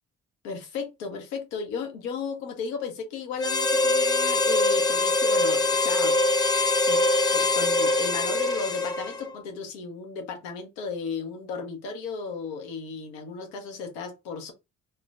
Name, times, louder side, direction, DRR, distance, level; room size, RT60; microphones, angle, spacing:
voice 1, 0.4-6.2 6.4-14.5, left 5 dB, 80° left, 0.8 m, -35 dB
Harmonica, 3.4-9.3, left 2 dB, 10° left, 0.7 m, -23 dB
3.6 x 2.1 x 2.4 m
hypercardioid pair, 45°, 41 cm